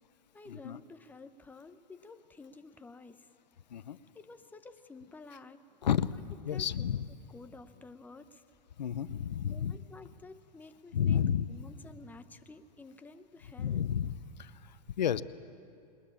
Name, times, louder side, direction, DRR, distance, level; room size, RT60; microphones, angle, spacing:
voice 1, 0.3-3.3 4.1-5.8 6.5-6.8 7.3-8.4 9.4-13.9, left 3 dB, 10° left, 9 dB, 0.9 m, -51 dB
voice 2, 6.4-7.1 8.8-9.8 10.9-11.4 13.6-14.1 14.4-15.2, left 9 dB, 90° left, 16 dB, 0.8 m, -31 dB
20.5 x 20.5 x 8.9 m, 2.5 s
hypercardioid pair, 120°, 21 cm